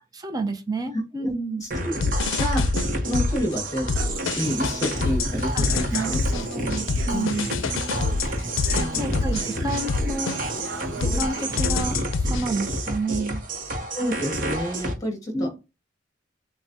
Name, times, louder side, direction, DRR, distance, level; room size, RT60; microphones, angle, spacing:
voice 1, 0.1-1.6 5.5-7.5 9.0-10.4 11.0-13.4 15.3-15.5, right 2 dB, 20° right, 0.6 m, -30 dB
voice 2, 1.6-2.0 2.4-2.6 3.0-3.9 4.4-6.2 7.0-7.3 7.5-7.6 8.7-9.2 13.9-15.5, equal, 20° left, 1.7 m, -29 dB
sound 1, 1.7-14.9, right 1 dB, 45° right, 1.0 m, -30 dB
sound 2, 2.0-3.5 3.9-10.7 11.0-12.5, left 4 dB, 85° left, 0.4 m, -26 dB
Human voice / Acoustic guitar, 4.0-11.9, right 4 dB, 90° right, 0.8 m, -37 dB
7.0 x 2.3 x 2.7 m
head